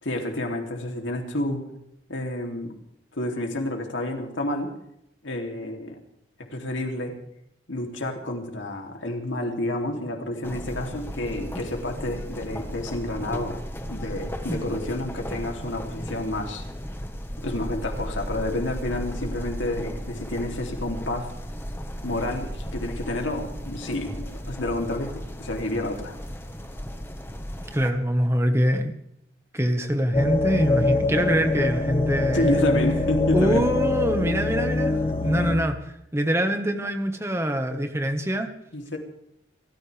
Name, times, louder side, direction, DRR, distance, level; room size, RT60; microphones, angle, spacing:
voice 1, 0.0-1.7 2.1-2.7 3.1-4.7 5.2-6.0 6.5-7.2 7.7-16.6 17.4-21.3 22.0-26.2 32.3-33.7 38.7-39.0, left 1 dB, 90° left, 2 dB, 3.2 m, -29 dB
sound 1, 10.4-27.9, equal, 10° left, 1.5 m, -35 dB
voice 2, 27.7-28.9 29.5-32.6 33.3-38.5, equal, 15° right, 6 dB, 1.5 m, -24 dB
sound 2, 30.1-35.5, left 2 dB, 30° left, 2.0 m, -24 dB
29.0 x 14.0 x 3.5 m, 0.76 s
head